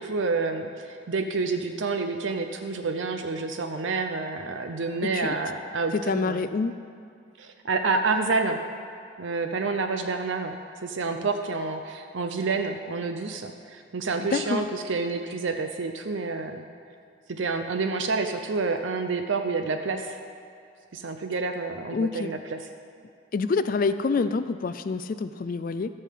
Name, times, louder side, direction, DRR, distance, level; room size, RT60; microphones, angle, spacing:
voice 1, 0.0-6.4 7.4-8.6 9.2-16.6 17.3-20.2 20.9-22.6, right 4 dB, 65° right, 6 dB, 0.5 m, -28 dB
voice 2, 5.0-5.4 5.9-6.7 14.2-14.6 21.9-22.3 23.3-25.9, left 4 dB, 40° left, 11 dB, 0.3 m, -27 dB
14.0 x 5.5 x 7.4 m, 2.4 s
head